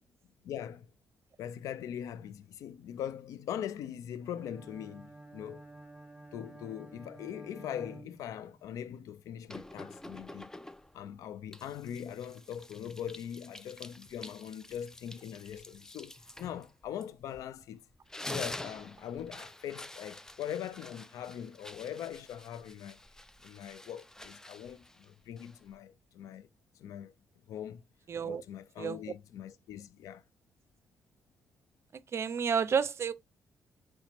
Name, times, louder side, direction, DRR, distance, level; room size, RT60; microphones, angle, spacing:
voice 1, 0.4-0.9 1.4-5.6 6.3-10.5 10.9-17.8 18.3-23.0 23.4-26.5 26.8-27.1 27.5-27.8 28.2-30.2, left 9 dB, 75° left, 0.4 m, -41 dB
Bowed string instrument, 4.2-8.8, right 2 dB, 5° right, 1.3 m, -51 dB
sound 1, 9.5-11.0 11.5-17.6 17.9-25.8, left 1 dB, 10° left, 0.4 m, -47 dB
voice 2, 28.1-28.4 28.8-29.0 32.1-33.1, right 7 dB, 50° right, 0.4 m, -30 dB
4.3 x 3.2 x 2.8 m
supercardioid pair, 55°, 6 cm